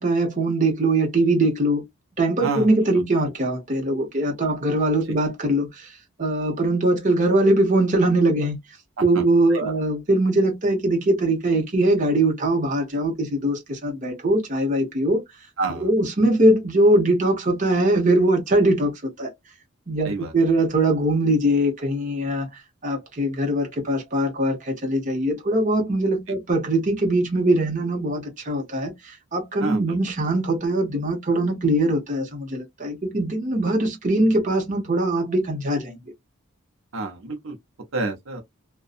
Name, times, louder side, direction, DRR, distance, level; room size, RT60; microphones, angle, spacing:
voice 1, 0.0-1.8 2.2-5.9 6.2-8.6 9.0-15.2 15.8-19.3 19.9-22.5 22.8-36.0, right 1 dB, 40° right, 0.9 m, -21 dB
voice 2, 15.6-15.9 20.0-20.3 29.6-30.0 36.9-37.6 37.9-38.4, right 3 dB, 80° right, 0.7 m, -29 dB
2.6 x 2.2 x 2.4 m
head